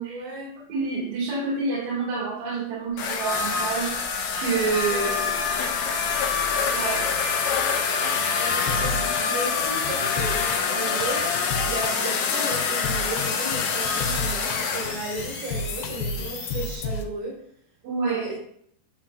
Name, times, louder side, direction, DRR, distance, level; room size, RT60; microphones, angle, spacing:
voice 1, 0.1-0.6 4.9-5.1 8.4-9.0 9.3-10.4 10.7-11.2 11.6-17.4 18.1-18.4, right 2 dB, 75° right, -2 dB, 3.6 m, -34 dB
voice 2, 0.7-4.0 4.3-5.2 6.7-7.1 17.8-18.2, right 4 dB, 55° right, -3 dB, 3.2 m, -27 dB
sound 1, 2.8-16.8, left 3 dB, 50° left, 2.2 m, -38 dB
sound 2, 3.0-14.9, left 6 dB, 70° left, 2.3 m, -26 dB
sound 3, 8.3-17.0, left 3 dB, 90° left, 2.7 m, -33 dB
8.8 x 7.4 x 2.5 m, 0.66 s
omnidirectional pair, 4.3 m